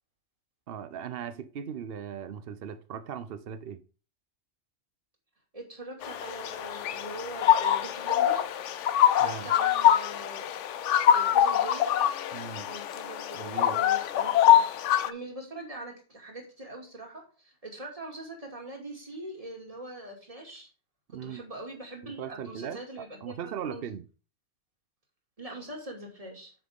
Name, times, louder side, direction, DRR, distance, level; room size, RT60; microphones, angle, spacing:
voice 1, 0.7-3.8 9.2-9.5 12.3-12.7 13.3-13.8 21.1-21.4 22.0-24.0, right 8 dB, 60° right, 0.9 m, -38 dB
voice 2, 5.5-8.5 9.2-10.5 11.1-11.8 12.7-14.7 15.0-20.7 21.2-23.9 25.4-26.5, right 2 dB, 30° right, 2.5 m, -42 dB
sound 1, 6.0-15.1, left 10 dB, 85° left, 1.0 m, -24 dB
8.6 x 6.2 x 3.6 m
omnidirectional pair, 1.2 m